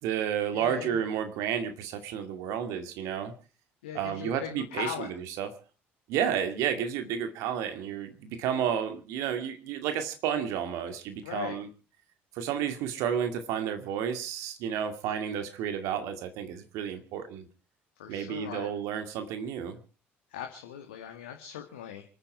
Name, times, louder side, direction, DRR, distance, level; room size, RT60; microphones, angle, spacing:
voice 1, 0.0-3.3 3.9-5.5 6.1-11.7 12.3-17.5 18.1-19.8, right 8 dB, 60° right, 8 dB, 2.3 m, -31 dB
voice 2, 0.5-1.0 3.8-5.1 11.2-11.6 18.0-18.7 20.3-22.0, left 9 dB, 70° left, 4 dB, 1.9 m, -39 dB
28.0 x 10.0 x 4.8 m, 0.37 s
figure-of-eight pair, 50°, 6 cm